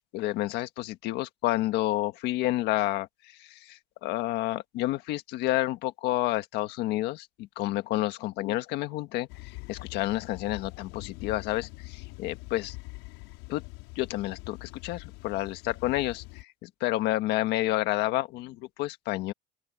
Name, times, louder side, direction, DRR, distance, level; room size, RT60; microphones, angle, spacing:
voice 1, 0.1-3.1 3.4-12.7 13.5-13.6 13.9-19.3, left 16 dB, 55° left, 1.6 m, -30 dB
sound 1, 9.3-16.4, left 25 dB, 80° left, 5.3 m, -44 dB
open air
cardioid pair, 170°, 20 cm